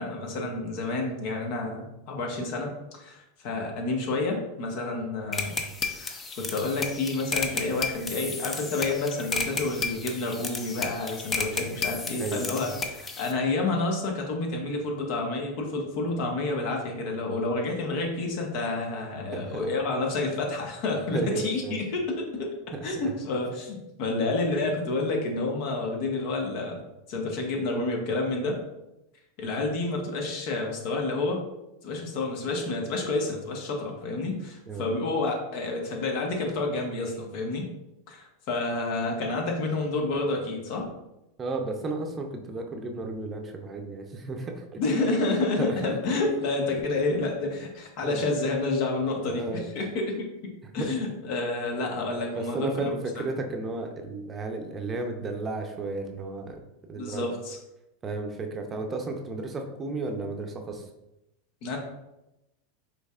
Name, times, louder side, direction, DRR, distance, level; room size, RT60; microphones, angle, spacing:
voice 1, 0.0-5.6 5.9-22.5 22.8-26.8 27.1-28.6 29.4-31.4 31.8-37.7 38.1-40.9 44.8-53.2 56.9-57.6 61.6-61.8, left 2 dB, 60° left, 1 dB, 1.1 m, -29 dB
sound 1, 5.3-13.3, left 4 dB, 25° left, 0.6 m, -33 dB
voice 2, 12.2-12.8 19.3-19.7 21.1-21.8 22.7-22.8 34.7-34.9 41.4-44.8 45.6-46.2 48.0-48.3 49.3-49.7 50.8-50.9 52.3-56.6 56.9-57.3 58.0-60.9, right 2 dB, 25° right, 3 dB, 0.7 m, -33 dB
5.3 x 3.4 x 2.4 m, 0.91 s
hypercardioid pair, 100°, 0 cm